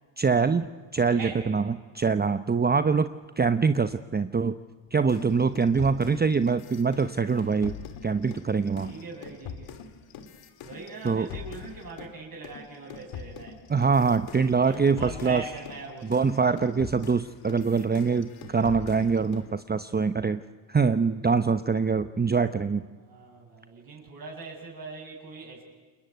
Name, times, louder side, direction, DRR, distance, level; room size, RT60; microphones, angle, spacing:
voice 1, 0.2-0.7 0.9-1.6 1.9-3.1 3.4-4.6 4.9-7.8 8.0-8.9 11.0-11.3 13.7-15.4 16.1-20.4 20.7-22.8, right 5 dB, 20° right, 11 dB, 0.9 m, -24 dB
voice 2, 1.1-1.5 8.8-9.8 10.6-13.6 14.6-16.2 23.0-25.6, right 3 dB, 45° right, -2 dB, 7.7 m, -41 dB
sound 1, 5.1-12.2 12.4-19.5, left 8 dB, 80° left, 2.7 m, -43 dB
29.0 x 21.5 x 9.4 m, 1.4 s
cardioid pair, 85°, 49 cm